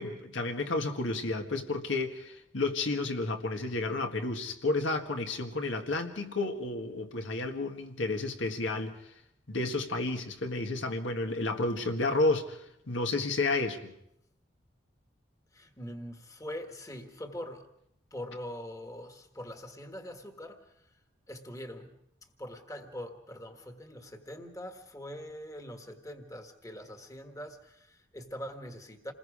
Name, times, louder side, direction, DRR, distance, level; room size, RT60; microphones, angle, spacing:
voice 1, 0.0-9.0 9.5-12.6 12.9-13.9, left 2 dB, 85° left, 4 dB, 1.7 m, -31 dB
voice 2, 15.5-17.7 18.1-21.0 21.3-21.9 22.4-29.1, equal, 20° left, 6 dB, 1.5 m, -43 dB
28.0 x 20.5 x 4.9 m, 0.76 s
head